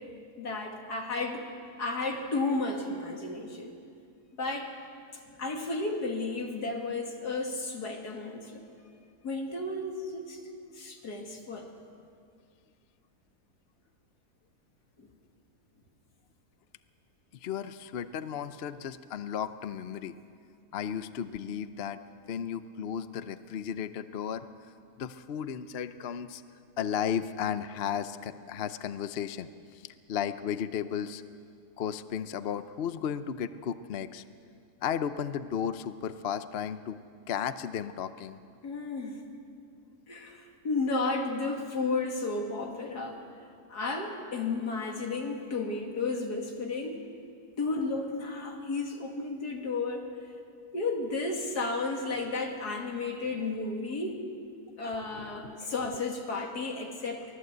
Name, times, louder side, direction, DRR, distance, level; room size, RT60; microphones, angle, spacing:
voice 1, 0.4-1.4 1.8-3.7 4.4-4.7 5.4-8.6 9.2-10.4 10.7-11.7 15.0-15.1 38.6-39.2 40.1-43.2 43.7-47.0 47.6-50.1 50.7-54.2 54.8-57.2, left 3 dB, 80° left, 2 dB, 2.9 m, -33 dB
voice 2, 17.4-20.1 20.7-22.0 22.3-24.4 25.0-26.4 26.8-29.8 30.1-31.2 31.8-34.2 34.8-37.0 37.3-38.4 55.4-55.6, left 8 dB, 55° left, 12 dB, 0.7 m, -34 dB
24.0 x 18.0 x 8.0 m, 2.3 s
omnidirectional pair, 1.7 m